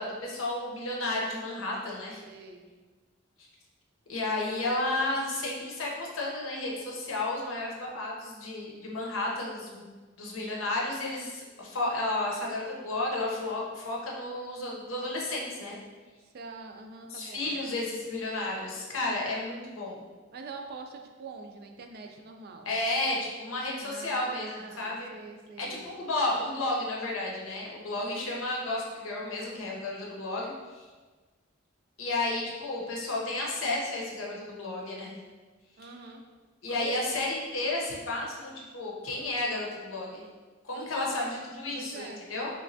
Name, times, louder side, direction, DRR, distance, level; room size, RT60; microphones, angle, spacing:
voice 1, 0.0-2.2 4.1-9.8 10.2-15.8 17.1-20.0 22.7-24.5 24.8-25.1 25.6-30.8 32.0-35.2 36.6-40.2 40.6-42.5, left 2 dB, 85° left, -2 dB, 0.7 m, -32 dB
voice 2, 2.2-2.7 16.2-17.6 20.3-22.7 23.8-25.9 28.0-28.4 35.8-36.2 36.7-37.0 40.7-41.3 41.7-42.2, right 4 dB, 50° right, 4 dB, 0.3 m, -44 dB
3.2 x 3.0 x 2.6 m, 1.4 s
head